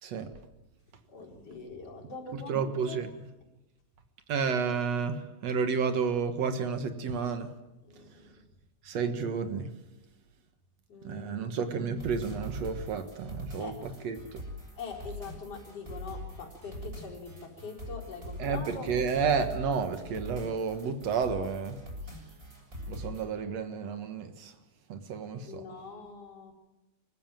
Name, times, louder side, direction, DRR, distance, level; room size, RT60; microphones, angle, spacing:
voice 1, 0.0-0.3 2.3-3.1 4.3-7.5 8.8-9.8 11.0-14.4 18.4-21.8 22.9-24.6 24.9-25.6, right 5 dB, 55° right, 9 dB, 2.3 m, -31 dB
voice 2, 1.1-3.1 7.8-8.4 10.9-11.5 13.6-13.8 14.8-18.9 25.4-26.5, left 4 dB, 40° left, -2 dB, 5.5 m, -43 dB
sound 1, 12.0-23.2, equal, 20° right, 7.4 m, -42 dB
25.0 x 15.5 x 9.1 m, 1.0 s
omnidirectional pair, 4.2 m